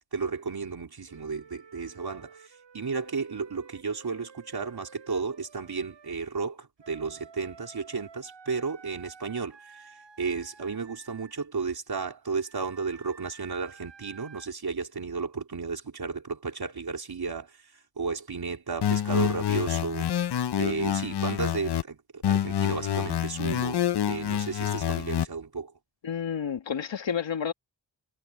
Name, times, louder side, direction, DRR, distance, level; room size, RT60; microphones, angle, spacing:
voice 1, 0.1-20.1 20.6-25.7, right 4 dB, 60° right, 3.5 m, -33 dB
Wind instrument woodwind instrument, 1.1-6.1 6.8-11.5 12.2-14.5, right 5 dB, 85° right, 6.2 m, -52 dB
sound 1, 18.8-21.8 22.2-25.2, left 10 dB, 65° left, 0.7 m, -27 dB
voice 2, 26.0-27.5, left 7 dB, 90° left, 1.8 m, -30 dB
wide cardioid pair, 90°, 43 cm